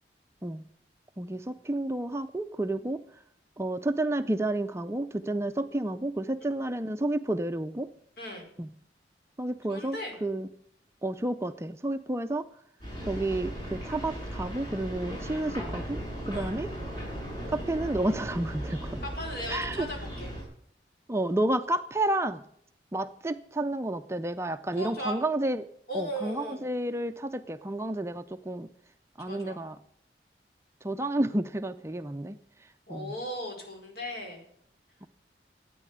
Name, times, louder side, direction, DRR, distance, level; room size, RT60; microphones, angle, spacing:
voice 1, 1.2-3.0 3.6-7.9 8.6-8.7 9.4-10.5 11.0-12.5 13.0-16.0 16.3-16.7 17.5-19.0 19.5-19.9 21.1-22.4 22.9-25.7 25.9-28.7 29.2-29.8 30.8-32.4 32.9-33.1, right 1 dB, 15° right, 8 dB, 0.5 m, -30 dB
voice 2, 8.2-8.5 9.7-10.1 16.3-16.6 19.0-20.3 24.8-25.2 25.9-26.6 29.3-29.6 32.9-34.4, equal, 55° left, 1 dB, 4.8 m, -37 dB
sound 1, 12.8-20.4, equal, 25° left, 7.4 m, -37 dB
13.0 x 9.3 x 8.1 m, 0.68 s
head